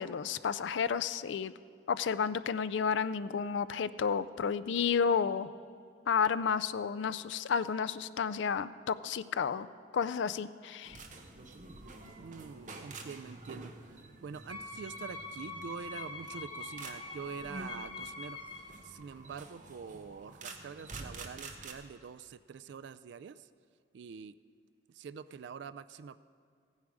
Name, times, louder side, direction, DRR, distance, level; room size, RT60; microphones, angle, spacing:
voice 1, 0.0-1.5 1.9-5.5 6.1-9.7 9.9-11.0, left 6 dB, 75° left, 15 dB, 0.4 m, -31 dB
sound 1, 10.8-21.7, right 3 dB, 40° right, 1.0 m, -48 dB
voice 2, 12.2-13.7 14.2-18.4 18.8-23.3 23.9-24.3 24.9-26.2, right 6 dB, 70° right, 14 dB, 0.3 m, -45 dB
Wind instrument woodwind instrument, 14.5-18.8, left 3 dB, 30° left, 0.9 m, -44 dB
15.5 x 9.7 x 4.8 m, 2.3 s
head